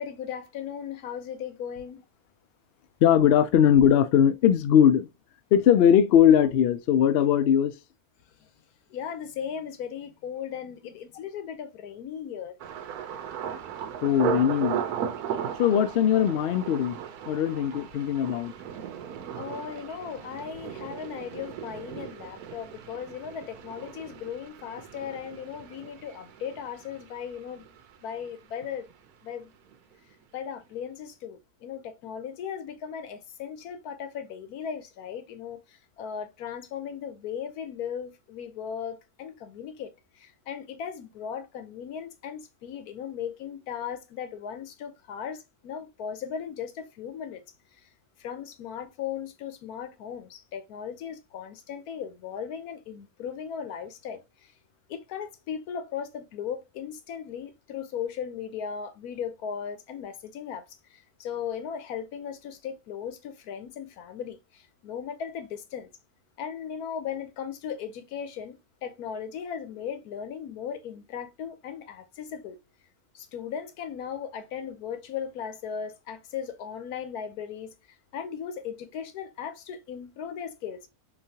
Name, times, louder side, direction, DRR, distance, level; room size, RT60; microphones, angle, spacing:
voice 1, 0.0-2.0 8.9-12.5 19.4-27.7 28.0-28.9 29.2-29.5 30.3-47.4 48.2-54.5 54.9-60.6 60.9-65.9 66.4-72.6 73.1-77.7 78.1-80.9, left 8 dB, 90° left, 1.2 m, -37 dB
voice 2, 3.0-5.1 5.5-7.7 14.0-14.8 15.6-17.0 17.3-18.5, left 9 dB, 75° left, 0.5 m, -20 dB
Thunder, 12.6-28.4 28.6-29.3 29.7-29.9, right 8 dB, 90° right, 1.2 m, -37 dB
3.8 x 3.1 x 2.7 m
omnidirectional pair, 1.5 m